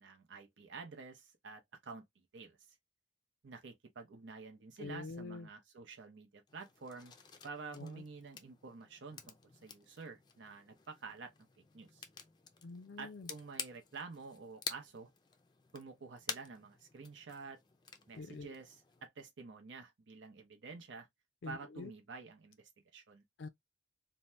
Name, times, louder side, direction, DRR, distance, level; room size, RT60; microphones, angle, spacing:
voice 1, 0.0-2.0 2.3-2.8 3.4-7.1 7.4-9.3 9.6-11.3 11.7-12.1 13.0-15.1 15.7-17.6 18.1-21.1 21.5-23.2, right 4 dB, 90° right, 0.6 m, -49 dB
voice 2, 4.8-5.5 7.7-8.0 12.6-13.3 18.1-18.5 21.4-21.9 23.4-23.5, left 3 dB, 85° left, 0.4 m, -45 dB
sound 1, 6.5-19.1, left 6 dB, 25° left, 0.4 m, -50 dB
2.7 x 2.1 x 3.2 m
head